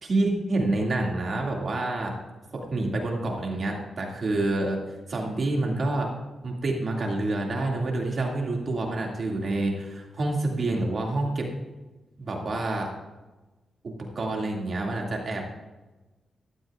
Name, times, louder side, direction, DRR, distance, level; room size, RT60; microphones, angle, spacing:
voice 1, 0.0-2.1 2.5-4.8 5.1-6.1 6.4-11.5 12.2-12.9 13.8-15.5, right 2 dB, 50° right, 0 dB, 2.3 m, -28 dB
15.0 x 12.0 x 2.5 m, 1.1 s
cardioid pair, 100°, 0 cm